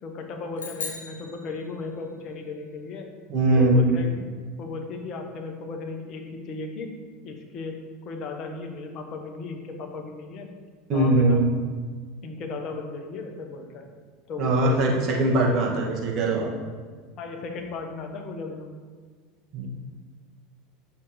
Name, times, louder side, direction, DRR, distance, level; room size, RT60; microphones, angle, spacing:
voice 1, 0.0-3.1 3.5-4.2 4.6-6.9 7.2-7.8 8.0-10.5 10.9-11.4 12.2-13.9 14.3-15.0 15.7-15.8 17.2-18.7, left 3 dB, 45° left, 3 dB, 1.2 m, -36 dB
sound 1, 0.6-2.2, left 4 dB, 85° left, 1.5 m, -38 dB
voice 2, 3.3-3.8 10.9-11.5 14.4-14.9 15.2-16.5 19.5-19.7, right 2 dB, 45° right, -3 dB, 1.8 m, -21 dB
8.4 x 6.3 x 3.2 m, 1.5 s
hypercardioid pair, 80°, 0 cm